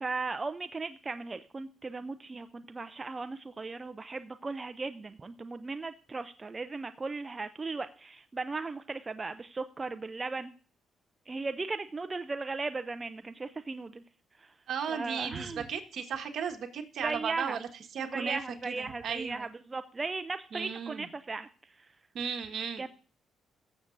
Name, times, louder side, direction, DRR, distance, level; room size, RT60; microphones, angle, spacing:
voice 1, 0.0-10.5 11.3-14.0 14.4-14.5 14.9-15.7 17.0-17.6 18.0-21.9 22.8-22.9, right 3 dB, 25° right, 10 dB, 0.5 m, -37 dB
voice 2, 14.7-19.5 20.5-21.1 22.1-22.8, right 7 dB, 65° right, 5 dB, 1.5 m, -35 dB
16.5 x 7.3 x 2.6 m, 0.40 s
cardioid pair, 90°, 0 cm